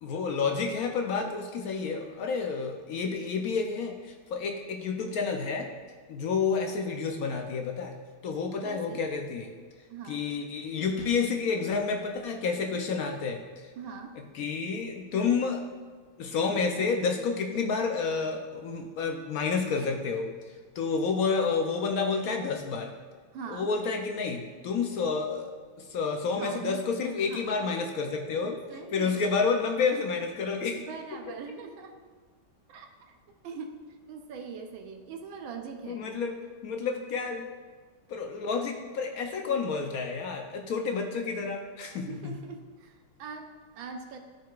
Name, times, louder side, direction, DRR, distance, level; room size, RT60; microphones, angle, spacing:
voice 1, 0.0-5.7 6.1-7.9 8.2-9.5 10.1-13.4 14.3-15.6 16.2-20.3 20.8-22.9 23.5-25.5 25.9-28.6 28.9-30.8 35.9-36.3 36.6-37.5 38.1-42.3, left 5 dB, 70° left, 3 dB, 0.8 m, -29 dB
voice 2, 8.6-9.0 9.9-10.2 13.7-14.2 23.3-23.7 26.4-26.9 27.3-27.5 28.4-29.4 30.7-32.0 32.7-33.1 33.4-36.0 42.1-44.2, right 5 dB, 80° right, 4 dB, 1.4 m, -42 dB
13.5 x 4.7 x 2.4 m, 1.5 s
omnidirectional pair, 2.1 m